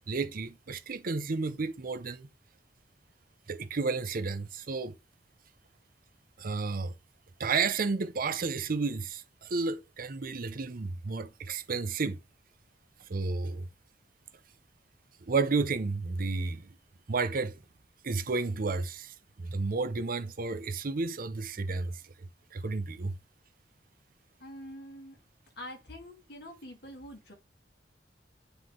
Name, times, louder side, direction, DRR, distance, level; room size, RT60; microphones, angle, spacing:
voice 1, 0.1-2.3 3.5-5.0 6.4-6.9 7.4-12.2 13.1-13.7 15.2-16.7 17.1-17.6 18.0-23.2, right 4 dB, 50° right, 0.6 m, -32 dB
voice 2, 24.4-25.2 25.6-27.3, equal, 60° left, 2.3 m, -45 dB
9.6 x 3.3 x 3.7 m
head